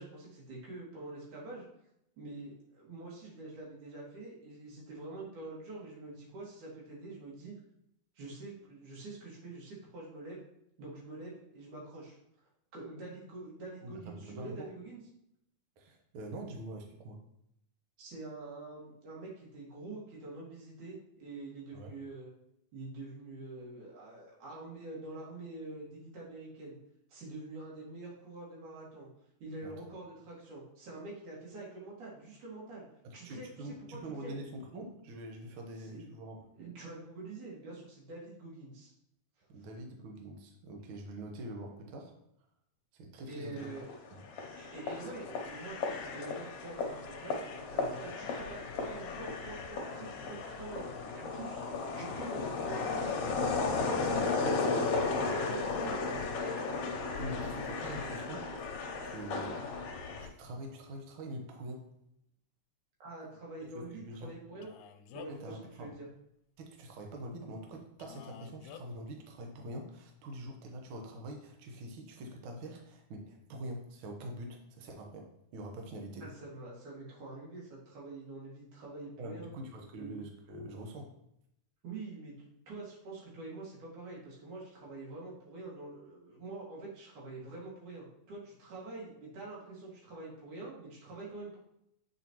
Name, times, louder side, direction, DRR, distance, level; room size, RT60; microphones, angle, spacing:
voice 1, 0.0-1.7 2.2-7.5 8.2-10.4 10.8-12.2 12.7-15.0 18.0-22.3 22.7-26.8 27.1-29.1 29.4-32.8 33.1-33.8 34.2-34.4 35.8-36.1 36.5-38.9 39.6-39.7 43.3-43.9 44.5-50.9 51.1-51.7 51.9-53.2 53.8-56.2 63.0-64.7 65.1-66.1 76.2-79.5 80.0-80.2 81.8-91.6, right 2 dB, 80° right, -4 dB, 3.5 m, -46 dB
voice 2, 13.8-14.7 15.8-17.2 21.7-21.9 29.6-29.7 33.0-36.4 39.5-42.1 42.9-43.7 44.1-44.2 54.4-54.6 57.1-59.8 60.2-61.9 63.7-64.4 65.3-65.9 66.6-76.3 79.2-81.1, right 1 dB, 60° right, 2 dB, 1.4 m, -44 dB
sound 1, 43.6-60.3, left 4 dB, 65° left, 1.5 m, -35 dB
Male speech man speaking, 64.6-65.5 68.0-68.8, left 10 dB, 85° left, 2.0 m, -50 dB
8.2 x 5.0 x 3.0 m, 0.77 s
omnidirectional pair, 3.4 m